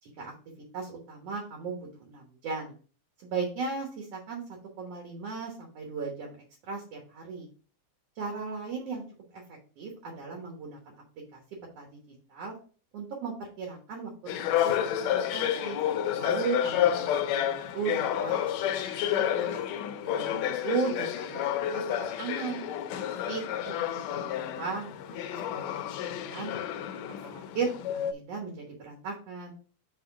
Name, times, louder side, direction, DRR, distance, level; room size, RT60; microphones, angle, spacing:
voice 1, 0.0-0.3 0.7-2.7 3.2-4.4 4.8-6.4 6.7-7.5 8.2-9.0 9.3-11.0 11.3-11.4 11.8-11.9 12.3-12.5 12.9-14.1 14.4-15.8 16.2-19.5 20.0-21.8 22.2-22.6 23.1-24.9 25.5-26.5 26.9-29.5, right 5 dB, 60° right, 0 dB, 2.1 m, -36 dB
sound 1, 14.3-28.1, left 10 dB, 80° left, 1.7 m, -30 dB
4.9 x 4.2 x 4.8 m, 0.40 s
omnidirectional pair, 3.5 m